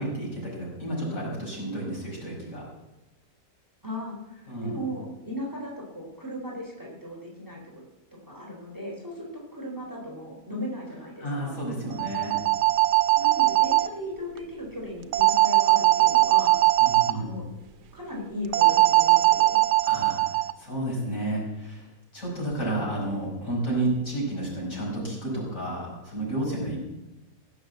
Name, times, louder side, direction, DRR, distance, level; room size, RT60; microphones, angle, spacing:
voice 1, 0.0-2.6 4.5-4.8 11.2-12.4 16.8-17.3 19.9-20.3 20.6-21.9 22.1-26.8, right 1 dB, 55° left, -3 dB, 5.9 m, -31 dB
voice 2, 3.8-7.8 8.3-11.6 13.2-16.6 17.1-17.4 17.9-19.6, equal, 10° right, -2 dB, 3.8 m, -37 dB
sound 1, 11.9-13.9 15.1-17.1 18.5-20.5, right 17 dB, 90° right, 1.3 m, -20 dB
18.0 x 7.4 x 8.0 m, 1.0 s
omnidirectional pair, 1.7 m